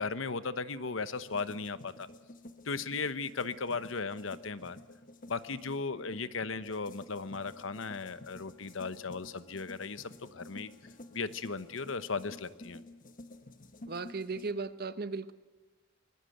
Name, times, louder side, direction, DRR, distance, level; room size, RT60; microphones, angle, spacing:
voice 1, 0.0-2.1 2.6-4.8 5.3-10.7 11.1-12.8, left 4 dB, 85° left, 14 dB, 1.0 m, -36 dB
sound 1, 1.1-14.5, left 1 dB, 45° left, 1.2 m, -52 dB
Wind instrument woodwind instrument, 7.1-12.1, left 1 dB, 10° left, 7.6 m, -68 dB
voice 2, 13.9-15.3, right 4 dB, 50° right, 13 dB, 1.0 m, -36 dB
24.0 x 20.0 x 7.9 m, 1.2 s
head